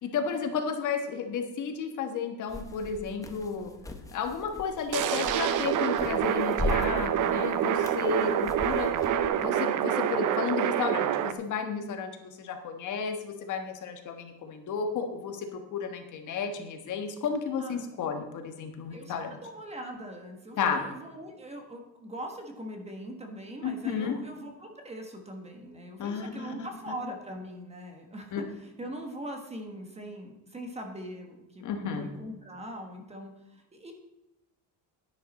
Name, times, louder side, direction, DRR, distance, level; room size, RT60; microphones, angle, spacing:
voice 1, 0.0-3.7 4.1-8.9 9.3-19.4 20.6-20.8 23.6-24.2 26.0-26.7 28.3-28.4 31.6-32.1, left 6 dB, 45° left, 5 dB, 1.4 m, -32 dB
sound 1, 2.5-9.3, left 2 dB, 10° left, 0.8 m, -39 dB
sound 2, 4.9-11.3, right 10 dB, 50° right, 0.7 m, -27 dB
voice 2, 17.6-17.9 18.9-19.1 19.4-33.9, right 1 dB, 15° right, 3 dB, 1.3 m, -41 dB
10.5 x 10.5 x 4.2 m, 0.95 s
cardioid pair, 165°, 41 cm